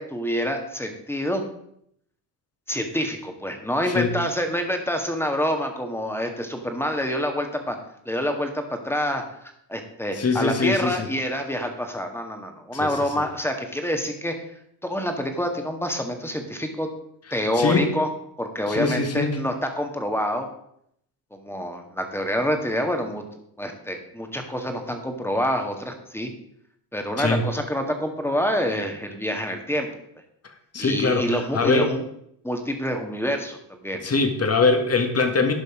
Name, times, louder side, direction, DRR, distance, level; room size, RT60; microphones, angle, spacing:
voice 1, 0.0-1.4 2.7-7.8 8.1-9.2 9.7-14.3 14.8-16.9 17.3-18.1 18.4-20.5 21.3-23.2 23.6-26.3 26.9-29.9 30.8-32.0 32.4-34.0, equal, 5° left, 5 dB, 1.9 m, -27 dB
voice 2, 10.2-11.1 12.7-13.2 17.5-17.9 18.7-19.4 27.2-27.4 30.7-31.9 34.0-35.5, left 4 dB, 30° left, 6 dB, 1.8 m, -22 dB
12.0 x 5.3 x 5.0 m, 0.72 s
supercardioid pair, 75°, 49 cm